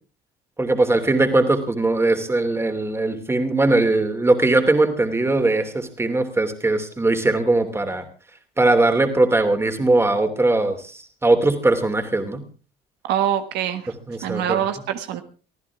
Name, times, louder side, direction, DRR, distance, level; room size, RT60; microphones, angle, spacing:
voice 1, 0.6-8.0 8.6-12.4 13.9-14.6, right 2 dB, 15° right, 6 dB, 2.8 m, -20 dB
voice 2, 13.1-13.8 14.2-15.2, right 10 dB, 85° right, 8 dB, 1.5 m, -24 dB
24.5 x 14.5 x 3.6 m, 0.36 s
cardioid pair, 110°, 17 cm